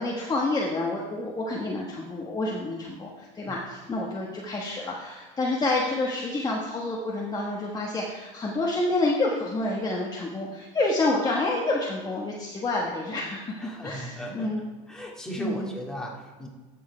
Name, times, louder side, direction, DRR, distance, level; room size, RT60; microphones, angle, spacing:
voice 1, 0.0-14.6 15.4-15.7, left 2 dB, 20° left, -3 dB, 1.2 m, -28 dB
voice 2, 13.6-14.5 14.9-16.5, right 1 dB, 5° left, -3 dB, 2.1 m, -36 dB
12.5 x 4.5 x 4.8 m, 1.3 s
supercardioid pair, 110°, 18 cm